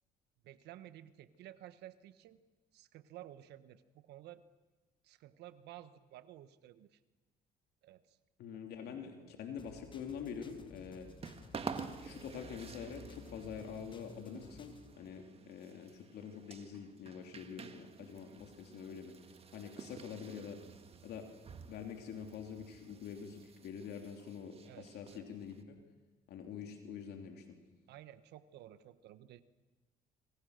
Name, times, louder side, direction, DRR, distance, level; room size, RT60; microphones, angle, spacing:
voice 1, 0.4-2.4 2.7-4.4 5.0-7.0 7.8-8.2 8.8-9.4 10.9-11.0 18.1-18.4 24.7-25.2 27.9-29.4, right 13 dB, 80° right, 13 dB, 1.2 m, -54 dB
voice 2, 8.4-11.1 12.0-19.1 19.5-20.6 21.0-21.3 21.6-25.8 26.3-27.6, left 7 dB, 75° left, 4 dB, 3.2 m, -46 dB
sound 1, 9.6-14.9, left 5 dB, 30° left, 1.4 m, -56 dB
sound 2, 10.5-25.6, right 5 dB, 35° right, 1.8 m, -50 dB
27.0 x 25.0 x 6.6 m, 1.2 s
cardioid pair, 110°, 17 cm